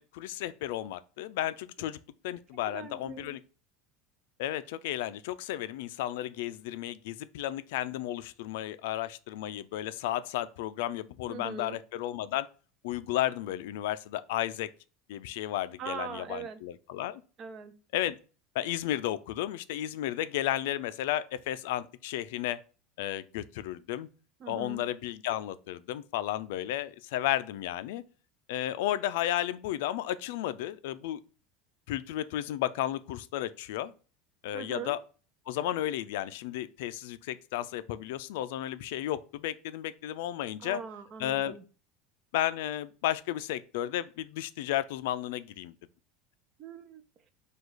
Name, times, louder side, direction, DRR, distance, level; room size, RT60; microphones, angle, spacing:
voice 1, 0.0-2.0 2.2-3.4 4.4-12.5 12.8-14.7 15.1-17.2 17.9-18.2 18.5-22.6 23.0-24.1 24.5-28.0 28.5-31.2 31.9-33.9 34.4-35.0 35.5-40.8 41.2-41.6 42.3-45.7, left 13 dB, 75° left, 0.3 m, -33 dB
voice 2, 2.7-3.4 11.3-11.8 15.8-16.6 17.4-17.7 24.4-24.8 34.5-35.0 40.6-41.6 46.6-47.0, right 6 dB, 30° right, 0.5 m, -41 dB
4.9 x 2.3 x 3.9 m
cardioid pair, 170°, 0 cm